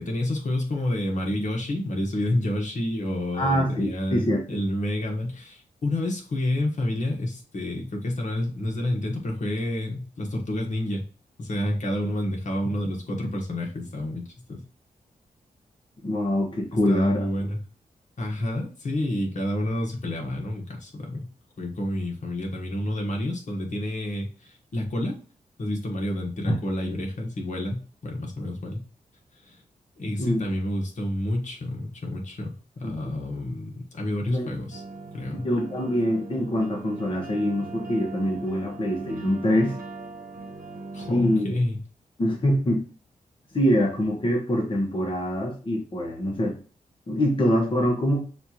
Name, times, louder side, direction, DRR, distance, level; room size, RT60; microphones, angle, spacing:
voice 1, 0.0-11.0 11.4-14.6 16.9-17.6 18.2-21.3 21.6-25.2 25.6-28.8 29.4-29.6 30.0-34.8 35.1-35.5 40.9-41.8, left 1 dB, 55° left, 1 dB, 1.3 m, -29 dB
voice 2, 3.3-4.4 16.0-17.3 26.5-26.6 30.2-30.5 32.8-33.2 34.3-34.5 35.4-39.8 41.1-41.5 42.2-42.9 43.5-46.6 47.1-48.2, equal, 35° left, 0 dB, 1.1 m, -24 dB
Electric mandocello drone in Gm, 34.7-41.4, right 3 dB, 90° right, 0.9 m, -39 dB
6.4 x 2.5 x 3.0 m, 0.38 s
cardioid pair, 85°, 15 cm